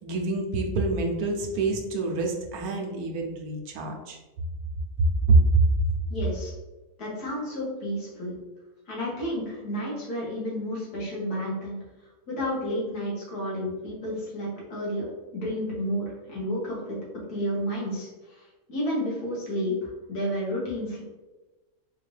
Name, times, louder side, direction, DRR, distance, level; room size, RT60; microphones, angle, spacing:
voice 1, 0.0-4.2 5.0-5.4, right 3 dB, 75° right, 2 dB, 1.1 m, -26 dB
voice 2, 6.1-6.5 7.0-8.3 8.9-11.8 12.3-17.0 17.3-18.4 18.7-19.7 20.1-21.0, equal, 90° left, -5 dB, 1.9 m, -31 dB
4.2 x 2.7 x 3.2 m, 1.1 s
omnidirectional pair, 1.6 m